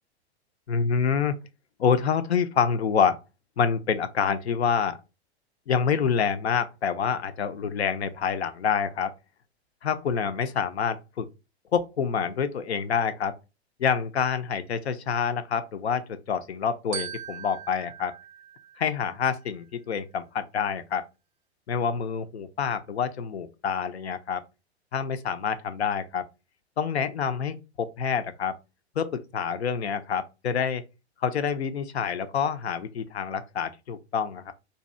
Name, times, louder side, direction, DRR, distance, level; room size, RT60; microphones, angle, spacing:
voice 1, 0.7-1.4 1.8-3.2 3.6-5.0 5.7-9.1 9.8-11.3 11.7-13.4 13.8-18.1 18.8-21.0 21.7-24.4 24.9-26.3 26.8-28.6 29.0-30.8 31.2-34.5, left 6 dB, 70° left, 0.5 m, -27 dB
Glockenspiel, 16.9-19.4, right 10 dB, 30° right, 0.4 m, -40 dB
2.7 x 2.3 x 3.1 m
figure-of-eight pair, 100°, 33 cm